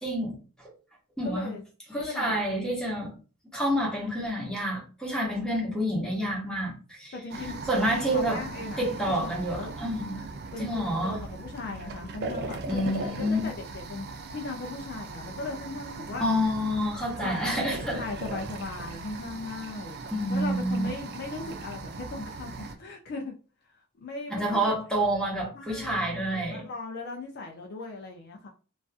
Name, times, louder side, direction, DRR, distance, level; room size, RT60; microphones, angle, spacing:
voice 1, 0.0-0.7 1.2-1.5 1.9-3.1 3.5-7.1 7.4-8.4 8.8-10.3 10.6-11.2 12.7-13.4 16.2-18.0 20.1-20.9 24.3-26.7, equal, 5° left, 0.8 m, -28 dB
voice 2, 1.2-1.6 1.9-2.4 7.1-7.6 8.0-9.7 10.5-16.3 17.2-20.0 20.3-23.3 23.7-24.7 25.5-26.0 26.5-28.5, left 3 dB, 50° left, 0.4 m, -38 dB
sound 1, 7.3-22.7, right 3 dB, 45° right, 0.3 m, -39 dB
2.4 x 2.3 x 2.4 m
head